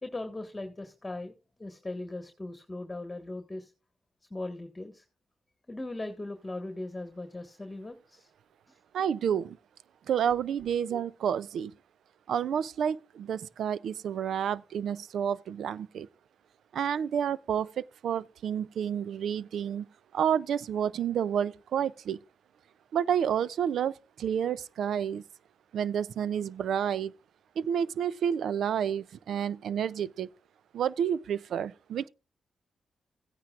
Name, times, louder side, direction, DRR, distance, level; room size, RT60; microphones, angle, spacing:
voice 1, 0.0-1.3 1.6-3.7 4.3-5.0 5.7-8.3 8.7-8.8, left 2 dB, 25° left, 1.5 m, -39 dB
voice 2, 8.9-9.6 10.1-11.7 12.3-16.1 16.7-19.9 20.1-22.2 22.9-25.2 25.7-27.1 27.6-30.3 30.7-32.1, right 8 dB, 75° right, 0.4 m, -30 dB
16.0 x 9.5 x 2.4 m
supercardioid pair, 45°, 0 cm